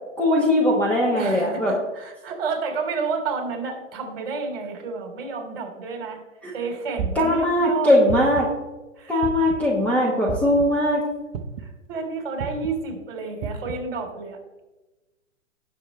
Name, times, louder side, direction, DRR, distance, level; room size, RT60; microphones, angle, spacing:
voice 1, 0.2-1.7 6.4-6.5 7.1-8.5 9.1-11.0, left 1 dB, 5° left, -4 dB, 1.2 m, -20 dB
voice 2, 1.1-6.2 6.5-7.9 9.0-9.2 11.6-14.4, right 4 dB, 45° right, 2 dB, 3.5 m, -30 dB
sound 1, 7.0-7.4 8.1-8.6 9.2-9.7 10.3-10.6 11.3-11.7 12.4-12.7 13.4-13.8, right 6 dB, 25° right, 0.8 m, -31 dB
18.0 x 6.5 x 3.3 m, 1.1 s
hypercardioid pair, 145°, 39 cm